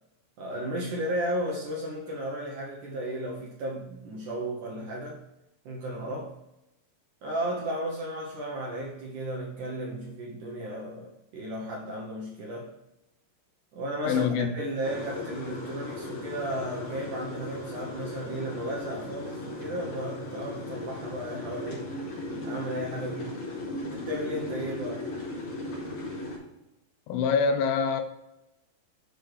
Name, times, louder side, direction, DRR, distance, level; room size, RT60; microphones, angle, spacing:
voice 1, 0.4-5.2 5.7-6.4 7.2-12.7 13.7-21.9 22.4-23.4 23.8-25.1, right 1 dB, 75° right, -2 dB, 1.8 m, -34 dB
voice 2, 14.0-14.5 27.1-28.0, left 6 dB, 85° left, 7 dB, 2.1 m, -25 dB
sound 1, 14.8-26.4, left 2 dB, 50° left, 4.1 m, -37 dB
8.1 x 4.9 x 4.7 m, 0.91 s
omnidirectional pair, 5.2 m